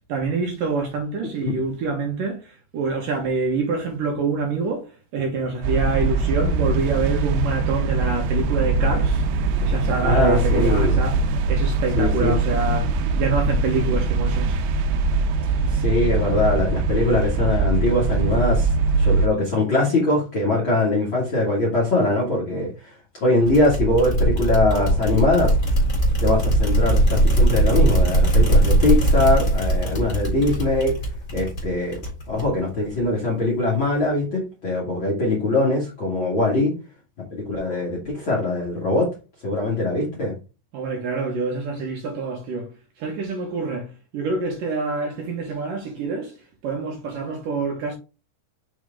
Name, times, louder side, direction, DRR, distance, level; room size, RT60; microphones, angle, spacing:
voice 1, 0.1-4.9 5.1-9.2 9.6-11.2 11.5-14.6 40.7-42.7 43.0-43.9 44.1-46.4 46.6-47.9, right 4 dB, 65° right, 2.4 m, -26 dB
sound 1, 5.6-19.3, right 3 dB, 80° right, 2.8 m, -22 dB
voice 2, 10.0-11.0 12.0-12.4 15.4-18.7 19.0-22.9 23.2-25.8 26.2-31.0 31.3-32.0 32.3-36.7 37.3-39.1 39.4-40.3, left 2 dB, 40° left, 2.0 m, -22 dB
sound 2, 23.5-32.7, right 1 dB, 20° left, 3.1 m, -20 dB
6.5 x 4.6 x 3.6 m
omnidirectional pair, 5.0 m